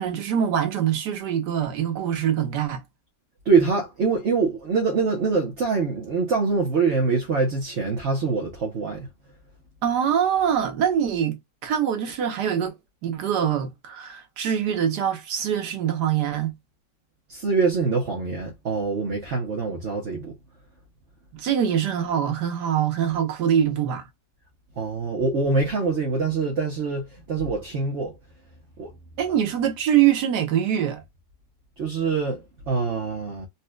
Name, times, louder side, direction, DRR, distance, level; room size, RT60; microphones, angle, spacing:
voice 1, 0.0-2.8 9.8-12.7 13.0-16.5 21.3-24.1 29.2-31.0, right 9 dB, 70° right, 1.5 m, -24 dB
voice 2, 3.4-9.1 17.3-20.3 24.8-28.1 28.8-28.9 31.8-33.5, right 4 dB, 50° right, 1.0 m, -24 dB
4.2 x 2.4 x 2.2 m
omnidirectional pair, 1.9 m